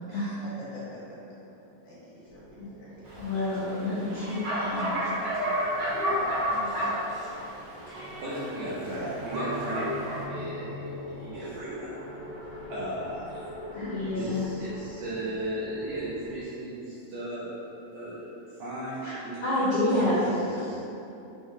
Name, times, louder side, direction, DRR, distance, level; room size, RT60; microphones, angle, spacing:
voice 1, 0.4-1.3 1.8-2.9 3.1-3.2 5.7-6.8 7.2-7.6 8.9-9.2, equal, 65° left, -10 dB, 2.6 m, -42 dB
sound 1, 2.3-16.4, left 1 dB, 45° left, 1.4 m, -43 dB
Bark, 3.0-10.2, equal, 55° right, 1.1 m, -32 dB
voice 2, 3.2-5.8 13.7-14.4 19.0-19.1 19.4-20.1, left 1 dB, 90° left, -13 dB, 1.2 m, -29 dB
voice 3, 8.2-9.9 10.3-11.9 12.4-13.5 14.1-17.6 17.9-19.4 19.9-20.8, right 1 dB, 80° right, -10 dB, 1.7 m, -36 dB
5.9 x 2.1 x 3.6 m, 2.8 s
omnidirectional pair, 3.9 m